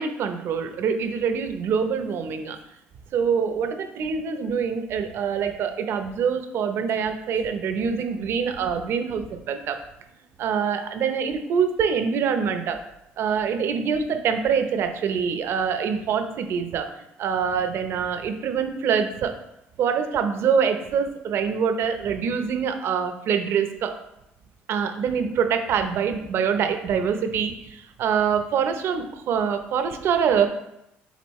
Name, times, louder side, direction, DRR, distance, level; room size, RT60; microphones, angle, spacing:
voice 1, 0.0-2.6 3.1-9.8 10.4-12.8 13.2-19.3 19.8-23.9 24.7-30.5, right 6 dB, 65° right, 7 dB, 0.8 m, -25 dB
8.1 x 3.9 x 3.2 m, 0.83 s
cardioid pair, 95°, 5 cm